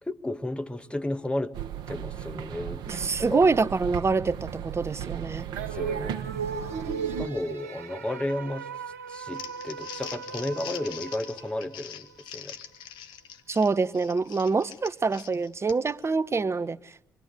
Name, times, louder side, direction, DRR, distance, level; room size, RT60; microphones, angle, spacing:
voice 1, 0.0-1.6 1.9-2.9 3.3-3.4 5.7-6.2 7.2-8.7 9.1-12.6, left 1 dB, 15° left, 2.0 m, -33 dB
sound 1, 1.5-7.3, right 9 dB, 70° right, 1.5 m, -36 dB
voice 2, 2.9-5.5 13.5-16.8, right 4 dB, 35° right, 1.1 m, -25 dB
sound 2, 5.6-12.1, right 6 dB, 90° right, 1.7 m, -37 dB
Crumpling crinkling, 9.1-16.0, left 9 dB, 70° left, 1.5 m, -43 dB
26.5 x 23.5 x 9.3 m
hypercardioid pair, 45°, 8 cm